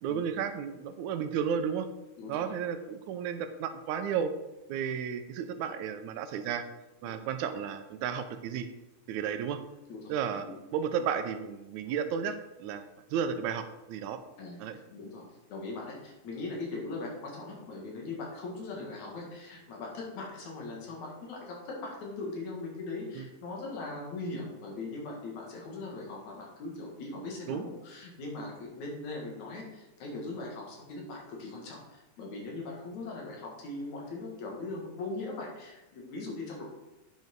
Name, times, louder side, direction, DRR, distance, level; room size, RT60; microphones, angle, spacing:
voice 1, 0.0-1.9 2.3-4.3 4.7-6.6 7.0-8.7 9.1-9.6 10.1-10.5 10.7-14.2 14.6-14.8 23.2-23.3 27.5-27.6, right 7 dB, 80° right, 10 dB, 2.0 m, -33 dB
voice 2, 9.9-10.5 14.4-15.2 15.5-36.6, left 3 dB, 75° left, -1 dB, 3.2 m, -40 dB
9.0 x 5.6 x 4.5 m, 1.0 s
omnidirectional pair, 3.4 m